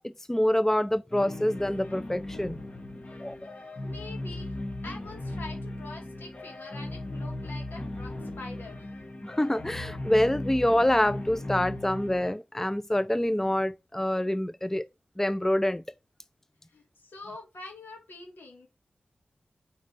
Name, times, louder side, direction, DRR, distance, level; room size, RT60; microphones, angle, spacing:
voice 1, 0.0-2.6 3.2-3.5 9.2-14.9 15.2-15.8, left 1 dB, 10° left, 0.4 m, -26 dB
sound 1, 1.1-12.3, left 1 dB, 45° left, 1.6 m, -37 dB
voice 2, 3.8-4.5 4.8-9.0 16.7-18.7, left 2 dB, 85° left, 2.7 m, -45 dB
4.9 x 4.3 x 5.5 m
cardioid pair, 55°, 3 cm